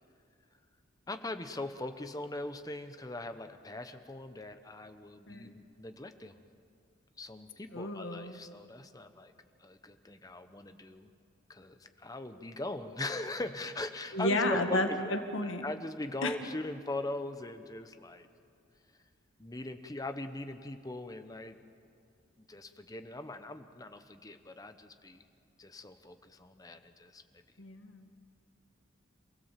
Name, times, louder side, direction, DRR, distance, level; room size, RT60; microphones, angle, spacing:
voice 1, 1.1-6.3 7.2-9.3 9.6-11.1 11.5-15.2 15.6-18.3 19.4-21.6 22.5-25.2 25.6-27.2, left 2 dB, 20° left, 8 dB, 0.9 m, -40 dB
voice 2, 7.7-8.4 14.1-15.6 16.2-16.3 27.6-28.1, left 1 dB, 70° left, 5 dB, 1.6 m, -32 dB
28.0 x 16.5 x 7.5 m, 2.4 s
head